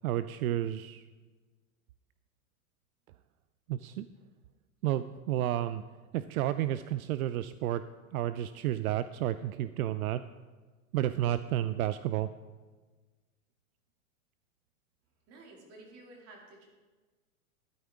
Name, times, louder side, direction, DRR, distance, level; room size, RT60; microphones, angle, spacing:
voice 1, 0.0-1.0 3.7-4.1 4.8-5.8 6.1-7.8 8.1-10.2 10.9-12.3, right 13 dB, 75° right, 13 dB, 0.5 m, -31 dB
voice 2, 15.3-16.7, right 2 dB, 35° right, 0 dB, 2.6 m, -52 dB
13.0 x 9.3 x 3.6 m, 1.3 s
supercardioid pair, 140°, 44 cm